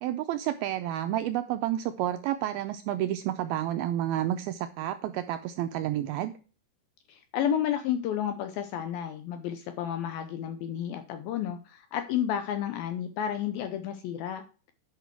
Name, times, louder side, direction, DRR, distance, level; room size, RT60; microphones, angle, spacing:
voice 1, 0.0-6.3, right 12 dB, 85° right, 9 dB, 2.2 m, -30 dB
voice 2, 7.1-14.4, left 9 dB, 80° left, 9 dB, 2.1 m, -31 dB
10.0 x 5.7 x 4.6 m, 0.37 s
omnidirectional pair, 4.9 m